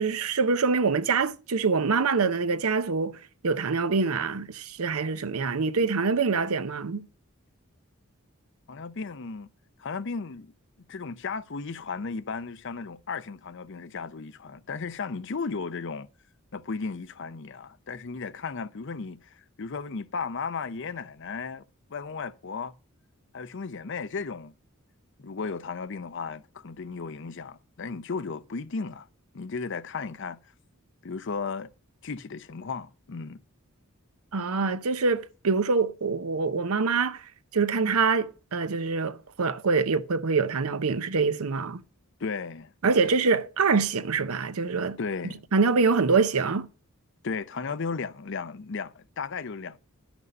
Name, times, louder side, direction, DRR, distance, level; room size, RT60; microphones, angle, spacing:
voice 1, 0.0-7.0 34.3-41.8 42.8-45.0 45.5-46.7, right 4 dB, 80° right, 0.7 m, -25 dB
voice 2, 8.7-9.5 9.8-10.5 10.9-16.1 16.5-22.7 23.3-24.5 25.2-29.1 29.3-30.4 31.0-31.7 32.0-33.4 42.2-42.7 45.0-45.4 47.2-49.8, left 4 dB, 55° left, 0.6 m, -35 dB
11.0 x 6.1 x 5.2 m
head